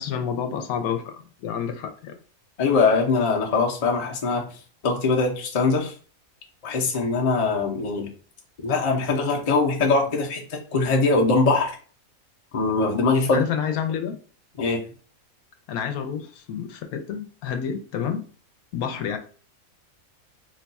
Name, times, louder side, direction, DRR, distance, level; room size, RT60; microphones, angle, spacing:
voice 1, 0.0-2.2 13.3-14.2 15.7-18.2 18.7-19.2, left 7 dB, 90° left, 6 dB, 1.1 m, -29 dB
voice 2, 2.6-4.4 4.8-5.9 6.6-8.1 8.6-11.7 12.5-13.4 14.6-14.8, left 3 dB, 40° left, 1 dB, 0.6 m, -22 dB
3.0 x 2.3 x 4.0 m, 0.41 s
omnidirectional pair, 1.5 m